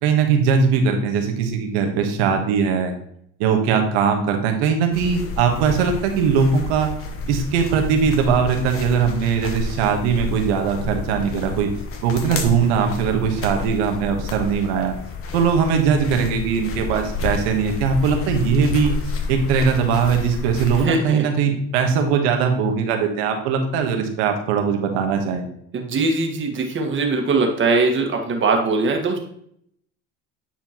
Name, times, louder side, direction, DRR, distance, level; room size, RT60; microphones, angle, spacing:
voice 1, 0.0-2.9 3.4-6.9 7.3-11.7 12.0-14.9 15.3-18.9 19.3-25.4, right 6 dB, 85° right, 4 dB, 1.3 m, -20 dB
sound 1, 4.9-20.8, left 4 dB, 45° left, 1.2 m, -30 dB
voice 2, 20.8-21.3 25.7-29.2, right 3 dB, 40° right, 3 dB, 1.5 m, -21 dB
9.4 x 4.4 x 2.9 m, 0.69 s
supercardioid pair, 95°, 32 cm